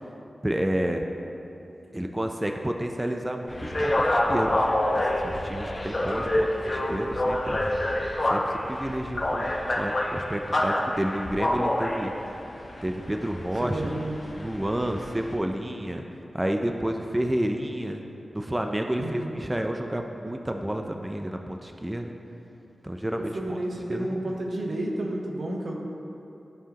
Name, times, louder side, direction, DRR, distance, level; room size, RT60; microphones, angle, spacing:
voice 1, 0.4-1.0 1.9-7.6 8.3-12.1 12.8-13.9 14.3-16.0 16.3-18.0 18.3-22.1 22.8-23.6 23.9-24.4, right 1 dB, 15° right, 4 dB, 0.5 m, -30 dB
sound 1, 3.5-15.3, left 1 dB, 45° left, 1.1 m, -27 dB
voice 2, 13.6-14.2 19.0-19.4 23.2-25.7, right 1 dB, 75° right, -1 dB, 1.0 m, -31 dB
14.0 x 4.7 x 2.9 m, 2.9 s
cardioid pair, 55°, 0 cm